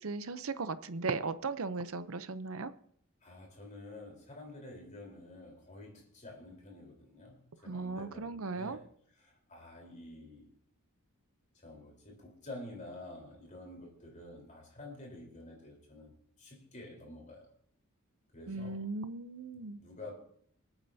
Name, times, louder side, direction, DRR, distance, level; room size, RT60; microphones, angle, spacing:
voice 1, 0.0-2.7 7.7-8.8 18.5-19.8, right 4 dB, 70° right, 0.7 m, -37 dB
voice 2, 3.2-8.9 9.2-10.5 11.6-17.5 18.3-18.8 19.8-20.2, left 1 dB, 35° left, 3.9 m, -49 dB
26.5 x 8.9 x 2.8 m
head